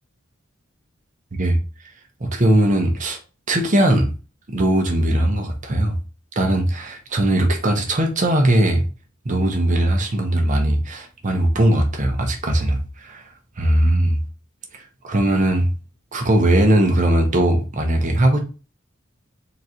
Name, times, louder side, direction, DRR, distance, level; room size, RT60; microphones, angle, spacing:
voice 1, 2.2-3.2 3.5-4.1 4.5-6.0 6.4-8.9 9.2-13.2 13.6-14.2 14.7-15.7 16.1-18.4, right 1 dB, 40° right, 0.8 m, -19 dB
3.9 x 2.5 x 4.2 m
head